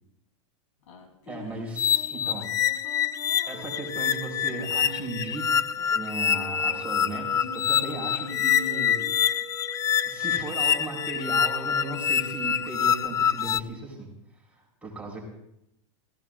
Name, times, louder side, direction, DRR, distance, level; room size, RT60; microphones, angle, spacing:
sound 1, 0.8-5.2 5.7-9.1, left 3 dB, 70° left, 4.0 m, -45 dB
voice 1, 1.3-2.8 3.5-5.5 5.9-9.3 10.0-14.1 14.5-15.2, right 2 dB, 5° right, -3 dB, 5.8 m, -36 dB
sound 2, 1.8-13.6, left 8 dB, 20° left, 0.5 m, -26 dB
sound 3, 3.5-13.1, right 6 dB, 25° right, 1.1 m, -44 dB
28.0 x 16.5 x 2.7 m, 0.81 s
supercardioid pair, 125°, 17 cm